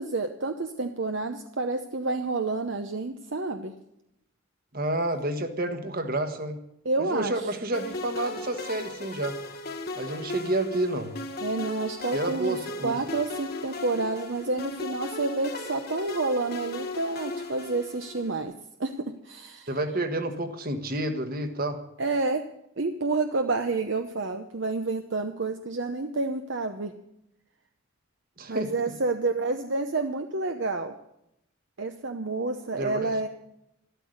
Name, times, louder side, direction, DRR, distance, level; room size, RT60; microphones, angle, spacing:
voice 1, 0.0-3.7 6.8-7.3 11.4-12.6 12.8-18.5 18.8-18.9 19.2-19.7 22.0-22.4 22.8-26.9 28.5-30.9 31.8-33.3, right 3 dB, 60° right, 6 dB, 0.8 m, -29 dB
voice 2, 4.7-6.6 7.0-9.4 10.0-11.1 12.1-13.0 19.7-21.8 28.4-28.7 32.8-33.2, right 1 dB, 45° right, 8 dB, 1.4 m, -29 dB
sound 1, 7.7-18.4, left 2 dB, 45° left, 1.6 m, -37 dB
13.0 x 12.5 x 6.5 m, 0.82 s
head